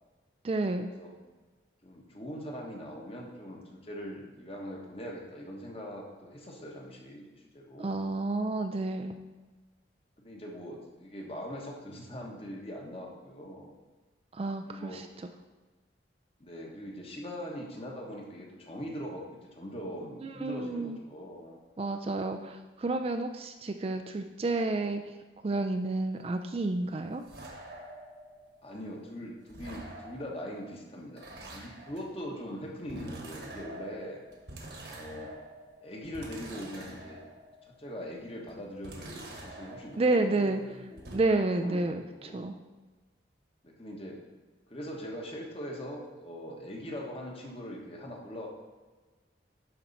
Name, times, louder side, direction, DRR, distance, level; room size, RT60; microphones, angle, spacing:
voice 1, 0.4-0.9 7.8-9.2 14.3-15.1 20.2-21.0 21.8-25.1 25.4-27.2 40.0-40.6 41.1-42.6, right 2 dB, 30° right, 6 dB, 0.3 m, -30 dB
voice 2, 1.8-8.0 10.2-13.7 14.6-15.0 16.4-21.6 28.6-31.2 31.5-34.2 34.9-35.3 35.8-37.2 37.8-41.1 41.6-42.6 43.6-44.2 44.7-48.5, equal, 30° left, -1 dB, 1.3 m, -41 dB
sound 1, 26.1-29.1 29.5-37.9 38.5-40.7 41.0-41.2, right 1 dB, 60° right, 1.3 m, -47 dB
11.0 x 4.4 x 4.1 m, 1.3 s
head